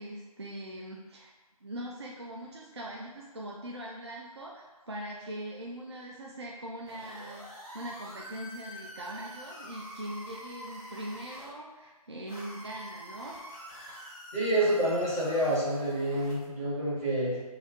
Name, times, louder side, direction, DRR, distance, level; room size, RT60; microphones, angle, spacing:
voice 1, 0.0-1.3 1.6-13.5, right 1 dB, 45° right, -3 dB, 0.4 m, -41 dB
sound 1, 6.9-11.5 12.3-16.5, equal, 10° left, 0.6 m, -46 dB
voice 2, 14.3-17.4, right 1 dB, 25° right, -11 dB, 1.1 m, -28 dB
3.0 x 2.4 x 4.2 m, 1.2 s
figure-of-eight pair, 165°, 20 cm